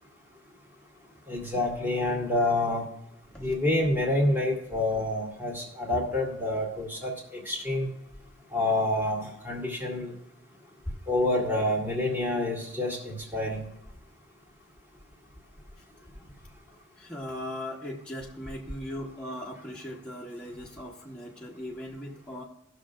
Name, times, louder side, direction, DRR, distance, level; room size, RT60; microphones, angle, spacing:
voice 1, 1.3-2.8 3.4-7.1 7.5-7.9 8.5-10.1 11.1-13.6, left 1 dB, 10° right, -2 dB, 2.2 m, -27 dB
voice 2, 17.0-22.4, left 1 dB, 5° left, -4 dB, 1.0 m, -39 dB
18.5 x 6.3 x 2.5 m, 0.86 s
head